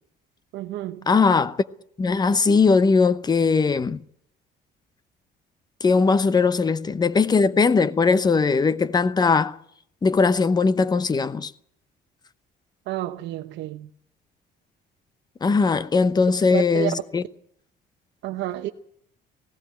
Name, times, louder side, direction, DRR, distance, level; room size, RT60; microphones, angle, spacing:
voice 1, 0.5-1.1 12.9-13.9 16.5-16.9 18.2-18.7, right 15 dB, 90° right, 0.9 m, -30 dB
voice 2, 1.1-1.6 2.0-4.0 5.8-9.6 10.0-11.5 15.4-17.2, left 4 dB, 20° left, 0.8 m, -20 dB
18.5 x 16.0 x 8.7 m
cardioid pair, 135°, 18 cm